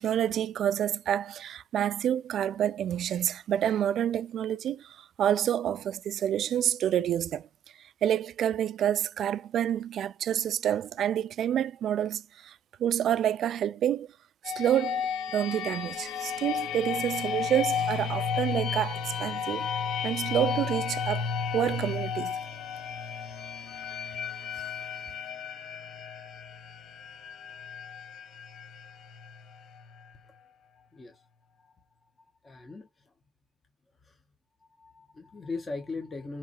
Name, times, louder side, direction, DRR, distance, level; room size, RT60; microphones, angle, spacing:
voice 1, 0.0-7.5 8.0-14.1 14.4-19.7 20.0-21.3 21.5-22.4, right 10 dB, 70° right, 0.3 m, -28 dB
sound 1, 14.4-30.1, left 6 dB, 85° left, 0.9 m, -33 dB
voice 2, 32.4-32.9 34.0-34.2 34.8-36.4, left 3 dB, 35° left, 1.1 m, -38 dB
5.7 x 3.0 x 2.6 m
cardioid pair, 90°, 0 cm